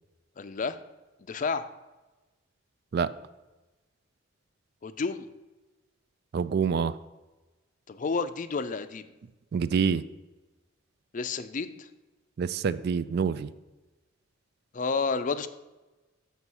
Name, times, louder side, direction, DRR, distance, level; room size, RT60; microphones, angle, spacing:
voice 1, 0.4-0.8 1.2-1.7 4.8-5.3 7.9-9.0 11.1-11.9 14.7-15.5, left 4 dB, 40° left, 11 dB, 0.4 m, -30 dB
voice 2, 6.3-7.0 9.5-10.0 12.4-13.5, right 6 dB, 50° right, 15 dB, 0.3 m, -26 dB
6.8 x 6.2 x 5.5 m, 1.1 s
head